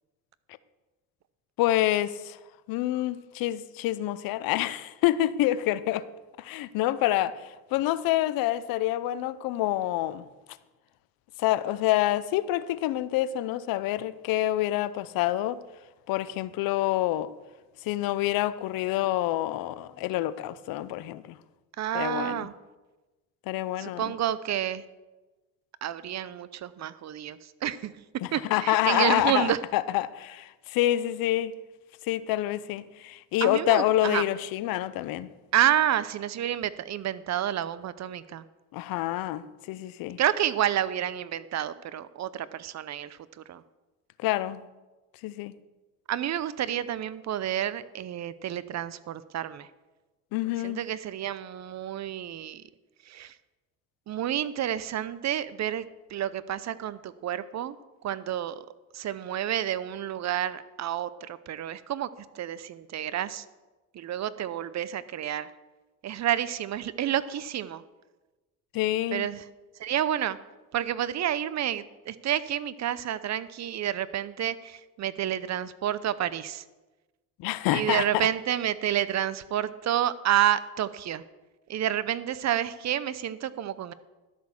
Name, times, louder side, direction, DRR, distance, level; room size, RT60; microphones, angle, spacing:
voice 1, 1.6-2.4 2.7-6.1 6.4-10.3 11.4-15.6 16.1-17.3 17.8-21.4 21.9-22.5 23.5-24.1 28.2-31.6 32.1-35.3 38.7-40.2 44.2-44.7 45.2-45.6 50.3-50.8 68.7-69.3 77.4-78.3, left 14 dB, 75° left, 0.7 m, -27 dB
voice 2, 21.8-22.5 23.8-24.8 25.8-27.9 28.3-29.6 33.4-34.2 35.5-38.4 40.2-43.2 43.5-43.6 46.1-49.7 50.6-52.6 53.1-53.3 54.1-55.8 56.1-57.8 58.0-58.7 58.9-62.1 62.3-63.4 63.9-65.5 66.0-67.8 69.1-69.4 69.8-70.4 70.7-76.6 77.7-81.2 81.7-83.9, right 11 dB, 50° right, 0.7 m, -29 dB
12.0 x 6.4 x 7.1 m
supercardioid pair, 80°, 35 cm